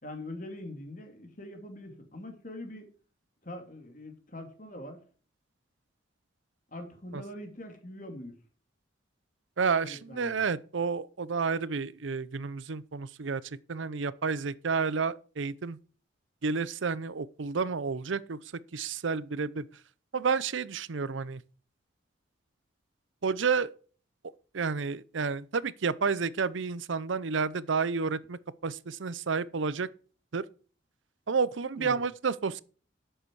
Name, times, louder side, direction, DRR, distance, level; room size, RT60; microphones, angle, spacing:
voice 1, 0.0-2.9 3.4-5.0 6.7-8.3 9.8-10.4 31.8-32.0, left 1 dB, 40° left, 2.5 m, -43 dB
voice 2, 9.6-13.4 13.7-15.8 16.4-18.4 18.7-19.6 20.1-21.4 23.2-23.7 24.5-29.9 30.3-30.4 31.3-32.6, right 5 dB, 75° right, 0.6 m, -30 dB
11.5 x 7.9 x 4.7 m
head